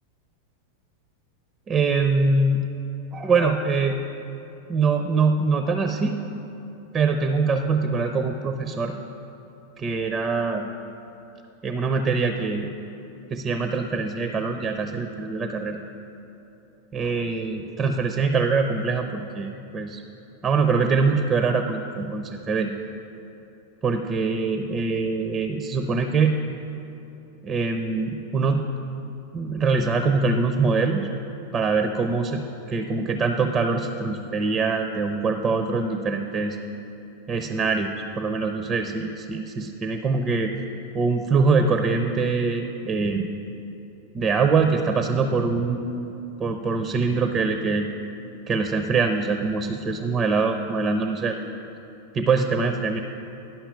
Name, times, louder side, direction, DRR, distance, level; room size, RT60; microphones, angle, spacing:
voice 1, 1.7-2.7 3.1-4.0 4.7-6.2 6.9-8.9 9.8-10.6 11.6-12.7 13.3-15.8 16.9-20.0 20.4-22.7 23.8-26.4 27.4-28.6 29.3-31.1 31.5-32.4 32.7-36.6 37.3-37.9 38.2-40.5 40.9-43.3 44.1-46.1 46.4-47.9 48.5-51.6 52.1-53.0, right 4 dB, 25° right, 7 dB, 0.4 m, -23 dB
10.5 x 5.7 x 5.5 m, 3.0 s
figure-of-eight pair, 90°, 0 cm